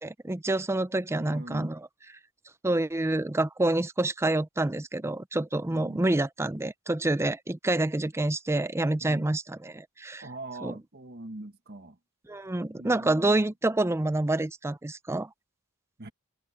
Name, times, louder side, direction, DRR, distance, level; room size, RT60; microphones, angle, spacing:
voice 1, 0.0-1.8 2.6-10.2 10.6-10.7 12.3-15.3, right 2 dB, 15° right, 0.5 m, -27 dB
voice 2, 1.2-1.7 5.7-6.1 9.0-9.3 10.2-12.0 12.7-13.5 16.0-16.1, right 2 dB, 50° right, 1.6 m, -42 dB
head